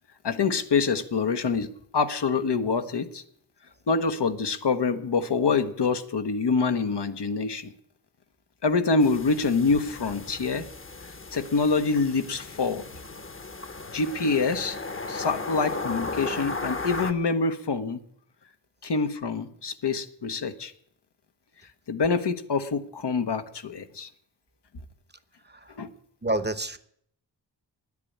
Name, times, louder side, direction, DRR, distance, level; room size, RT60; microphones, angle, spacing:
voice 1, 0.2-3.2 3.9-7.7 8.6-10.7 11.3-12.8 13.9-14.8 15.1-18.0 18.8-20.7 21.9-24.1 25.8-25.9, left 4 dB, 70° left, 8 dB, 1.1 m, -26 dB
sound 1, 9.0-17.1, left 3 dB, 30° left, 1.0 m, -36 dB
voice 2, 26.2-26.8, right 1 dB, 25° right, 12 dB, 0.9 m, -29 dB
9.9 x 8.5 x 8.5 m, 0.67 s
cardioid pair, 50°, 43 cm